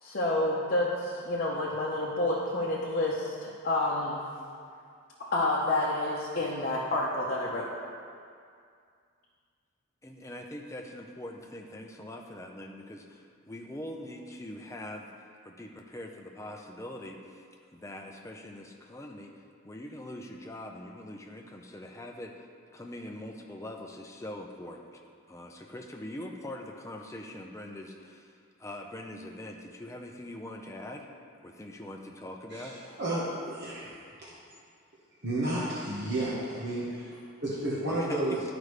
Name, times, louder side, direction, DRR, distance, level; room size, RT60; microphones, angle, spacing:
voice 1, 0.0-4.2 5.3-7.7, left 2 dB, 45° left, -6 dB, 0.8 m, -29 dB
voice 2, 10.0-15.1 15.4-17.4 17.7-19.3 19.6-22.4 22.7-25.0 25.3-28.3 28.6-31.1 31.4-32.8 37.9-38.4, left 1 dB, 15° left, 2 dB, 0.5 m, -43 dB
voice 3, 33.0-33.9 35.2-38.4, right 1 dB, 50° right, -8 dB, 1.2 m, -32 dB
11.0 x 5.0 x 3.2 m, 2.3 s
head